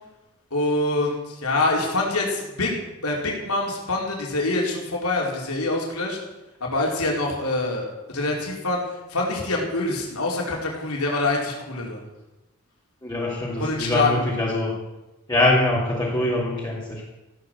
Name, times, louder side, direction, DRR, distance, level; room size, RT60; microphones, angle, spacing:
voice 1, 0.5-2.7 3.0-6.2 6.6-7.9 8.1-8.8 9.1-12.0 13.6-14.3, left 2 dB, 85° left, -2 dB, 4.6 m, -25 dB
voice 2, 13.0-14.7 15.3-17.0, left 1 dB, 20° left, -6 dB, 3.1 m, -23 dB
16.0 x 10.5 x 7.8 m, 1.0 s
head